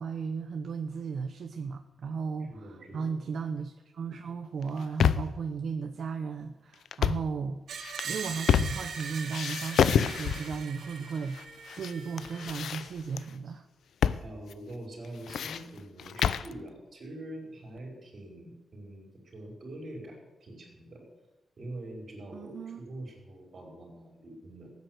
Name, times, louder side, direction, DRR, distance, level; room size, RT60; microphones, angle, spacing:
voice 1, 0.0-7.6 8.0-13.6 22.3-22.8, right 5 dB, 60° right, 6 dB, 0.9 m, -35 dB
voice 2, 2.5-3.1 14.2-21.0 21.6-24.7, right 1 dB, 40° right, 1 dB, 5.2 m, -44 dB
sound 1, 4.6-5.4 6.9-7.3 7.8-9.0 9.3-10.6 11.3-11.9 12.2-13.2 14.0-14.3 14.5-14.6 15.0-16.5, left 8 dB, 80° left, 0.6 m, -28 dB
Screech, 7.7-12.6, right 5 dB, 80° right, 2.3 m, -41 dB
18.0 x 9.5 x 8.1 m, 1.1 s
wide cardioid pair, 175°, 0 cm